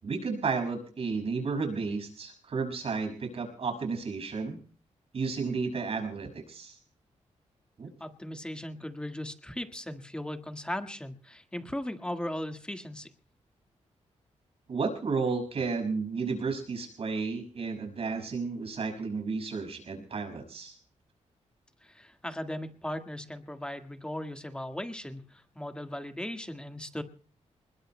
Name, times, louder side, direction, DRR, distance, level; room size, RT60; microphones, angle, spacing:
voice 1, 0.0-4.6 5.1-6.8 7.8-7.9 14.7-20.8, right 4 dB, 55° right, 5 dB, 6.0 m, -32 dB
voice 2, 8.0-13.1 21.8-27.0, left 1 dB, 10° left, 7 dB, 1.7 m, -37 dB
28.0 x 21.0 x 2.2 m, 0.40 s
cardioid pair, 110°, 12 cm